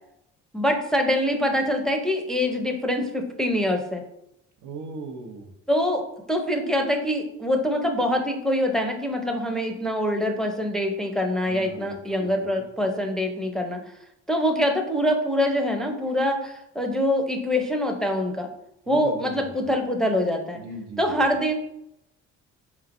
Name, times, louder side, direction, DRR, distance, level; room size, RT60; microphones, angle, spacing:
voice 1, 0.5-4.0 5.7-13.8 14.3-18.5 18.9-20.6 21.0-21.5, left 1 dB, ahead, 3 dB, 0.5 m, -24 dB
voice 2, 4.6-5.5 11.4-12.7 18.9-19.7 20.6-21.5, right 4 dB, 75° right, 3 dB, 0.8 m, -39 dB
4.4 x 3.1 x 2.5 m, 0.80 s
cardioid pair, 90°, 30 cm